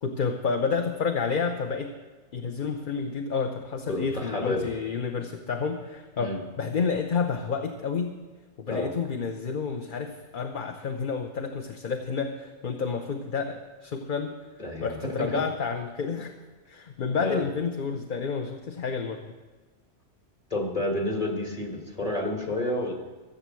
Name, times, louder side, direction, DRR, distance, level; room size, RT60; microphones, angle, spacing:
voice 1, 0.0-1.9 2.3-8.2 8.6-14.4 14.8-16.4 16.7-19.2, left 5 dB, 50° left, 5 dB, 0.9 m, -30 dB
voice 2, 3.9-4.7 6.2-6.4 8.7-8.9 14.6-15.4 17.2-17.4 20.5-22.9, left 1 dB, 30° left, 1 dB, 2.2 m, -30 dB
15.0 x 7.1 x 7.6 m, 1.3 s
omnidirectional pair, 1.2 m